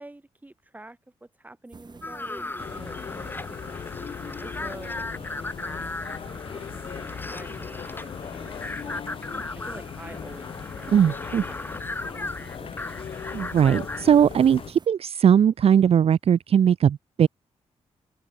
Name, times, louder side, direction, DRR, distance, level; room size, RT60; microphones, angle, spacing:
voice 1, 0.0-9.0 9.6-11.2 11.5-12.8, right 2 dB, 15° right, 5.6 m, -47 dB
sound 1, 1.7-14.9, right 5 dB, 40° right, 2.6 m, -49 dB
sound 2, 2.0-14.3, left 2 dB, 15° left, 1.7 m, -37 dB
sound 3, 2.6-14.7, left 7 dB, 50° left, 0.8 m, -38 dB
voice 2, 10.9-11.4 13.3-17.3, right 8 dB, 60° right, 0.7 m, -19 dB
cardioid pair, 95°, 12 cm